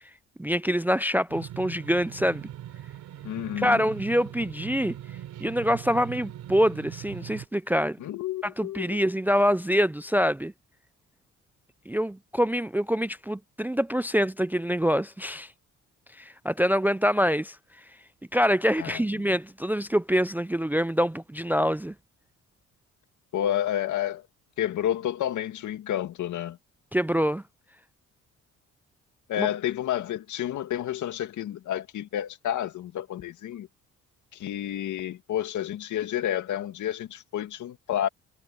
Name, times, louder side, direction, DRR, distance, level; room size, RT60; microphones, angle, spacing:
voice 1, 0.4-2.4 3.6-5.0 5.4-8.0 8.4-10.5 11.9-15.5 16.2-17.6 18.3-21.9 26.9-27.4 29.4-29.5, equal, 5° right, 0.4 m, -25 dB
sound 1, 1.3-7.4, right 12 dB, 80° right, 3.8 m, -41 dB
voice 2, 3.2-3.8 8.0-9.0 18.8-19.3 23.3-24.3 24.6-26.6 29.3-33.7 34.4-38.1, left 11 dB, 75° left, 2.2 m, -30 dB
cardioid pair, 90°, 30 cm